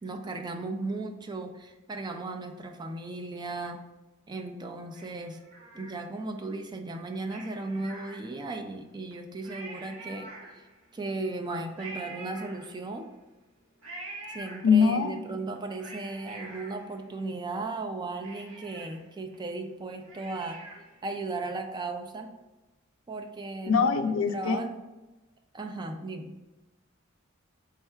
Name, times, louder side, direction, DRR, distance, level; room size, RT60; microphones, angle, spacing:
voice 1, 0.0-3.8 4.3-5.4 5.7-10.3 10.5-10.6 10.9-13.1 14.3-20.6 21.0-22.3 23.1-23.9 24.3-24.7 25.5-26.4, right 2 dB, 20° right, 4 dB, 0.3 m, -36 dB
Cat, 4.9-6.4 7.2-8.7 9.1-9.2 9.4-10.9 11.8-13.1 13.8-15.1 15.6-17.6 17.9-18.0 18.2-21.0 21.4-21.5, right 2 dB, 75° right, 0.9 m, -45 dB
voice 2, 14.6-15.1 23.7-24.6, left 5 dB, 80° left, 8 dB, 0.4 m, -23 dB
3.5 x 2.3 x 4.2 m, 1.1 s
head